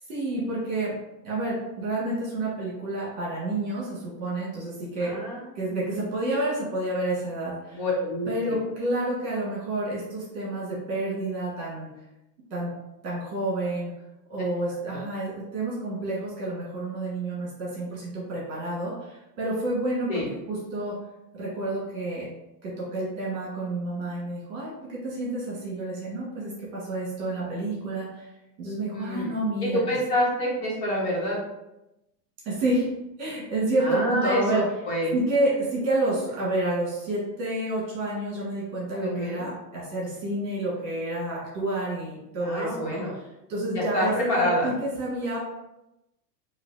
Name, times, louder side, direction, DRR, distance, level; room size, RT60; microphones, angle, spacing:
voice 1, 0.1-0.9 1.2-5.1 5.5-7.8 8.3-11.9 12.5-12.7 13.0-13.9 14.3-20.2 20.5-20.9 21.4-22.2 22.6-28.2 28.6-29.8 32.4-32.9 33.2-34.6 35.1-43.0 43.5-45.4, right 2 dB, 30° right, -6 dB, 1.3 m, -29 dB
voice 2, 5.0-5.5 7.7-8.3 14.9-15.0 20.1-20.3 28.9-31.4 33.8-35.1 39.0-39.5 42.4-43.2 43.7-44.7, left 1 dB, 60° left, -4 dB, 1.5 m, -27 dB
4.2 x 2.7 x 2.7 m, 0.91 s
supercardioid pair, 175°, 48 cm